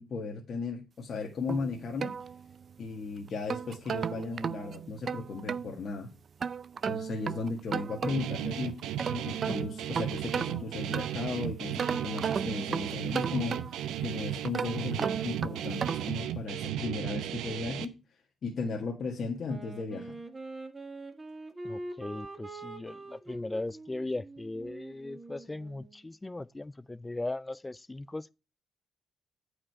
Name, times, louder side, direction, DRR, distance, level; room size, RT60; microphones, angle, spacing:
voice 1, 0.0-2.1 2.8-6.1 6.8-8.8 9.1-18.0 18.4-20.2, left 4 dB, 55° left, 1.8 m, -36 dB
sound 1, 1.5-2.8 3.3-5.7 6.4-8.4 8.8-11.3 11.8-14.0 14.5-16.2, right 6 dB, 45° right, 0.4 m, -35 dB
Guitar, 8.1-17.9, right 10 dB, 90° right, 0.7 m, -35 dB
Wind instrument woodwind instrument, 19.5-26.0, right 2 dB, 20° right, 1.7 m, -44 dB
voice 2, 21.6-28.3, left 2 dB, 15° left, 0.4 m, -38 dB
8.8 x 5.1 x 4.7 m
cardioid pair, 90°, 0 cm